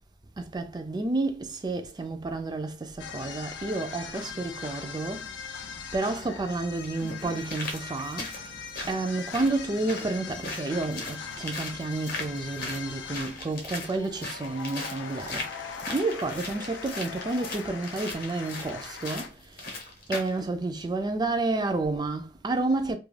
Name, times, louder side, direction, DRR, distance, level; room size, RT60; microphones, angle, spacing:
voice 1, 0.4-19.8 20.1-23.0, right 2 dB, 25° right, 0.3 m, -30 dB
sound 1, 3.0-19.3, left 6 dB, 85° left, 0.4 m, -41 dB
sound 2, 6.8-20.4 20.8-20.9, left 2 dB, 50° left, 0.8 m, -39 dB
2.4 x 2.2 x 3.1 m
head